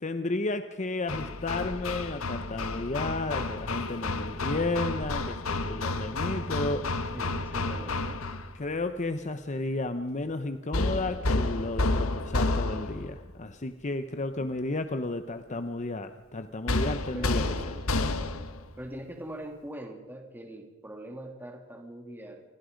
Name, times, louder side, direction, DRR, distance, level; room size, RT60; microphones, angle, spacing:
voice 1, 0.0-6.9 8.5-17.4, left 2 dB, 35° left, 9 dB, 0.9 m, -32 dB
Hammer, 1.1-8.5 10.7-13.1 16.7-18.6, left 2 dB, 80° left, 1.4 m, -30 dB
voice 2, 7.1-8.2 17.1-17.7 18.8-22.4, right 1 dB, 10° right, 3 dB, 2.5 m, -42 dB
28.5 x 23.5 x 5.2 m, 1.2 s
head